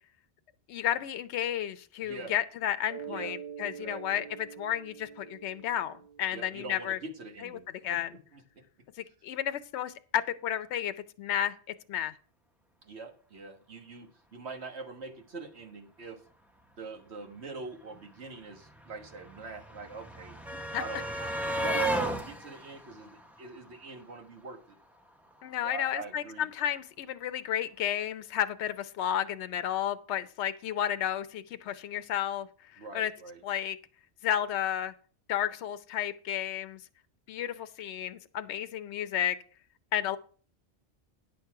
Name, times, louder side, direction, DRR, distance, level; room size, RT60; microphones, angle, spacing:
voice 1, 0.7-7.0 7.4-7.6 7.8-8.1 9.0-10.9 11.2-11.5 11.9-12.1 20.7-20.8 25.4-32.5 32.9-33.1 33.4-33.8 34.2-34.9 35.3-36.8 37.3-39.4 39.9-40.2, left 10 dB, 75° left, 11 dB, 0.9 m, -32 dB
voice 2, 2.0-2.3 3.0-3.3 3.6-4.3 6.3-8.4 12.8-16.2 16.8-20.4 20.7-24.8 25.6-26.5 32.8-33.4, right 3 dB, 70° right, 3 dB, 1.6 m, -44 dB
Mallet percussion, 2.9-7.3, right 8 dB, 45° right, 0.8 m, -45 dB
sound 1, 17.7-17.8 17.9-24.1 25.3-25.4 25.7-25.8, right 1 dB, ahead, 0.7 m, -35 dB
10.0 x 6.6 x 4.7 m, 0.43 s
omnidirectional pair, 1.2 m